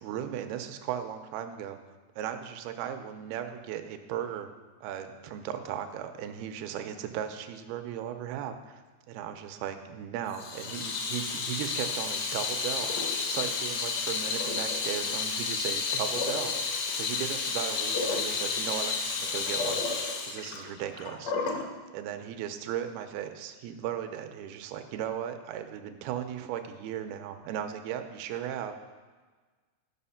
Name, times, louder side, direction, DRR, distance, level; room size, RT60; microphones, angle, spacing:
voice 1, 0.0-1.8 2.2-4.5 4.8-8.8 9.1-12.9 13.3-19.8 20.2-21.6 21.9-28.8, right 9 dB, 85° right, 7 dB, 2.6 m, -36 dB
Water tap faucet / Sink (filling or washing), 10.3-21.7, left 4 dB, 70° left, 1.6 m, -31 dB
12.0 x 5.6 x 5.6 m, 1.4 s
omnidirectional pair, 4.4 m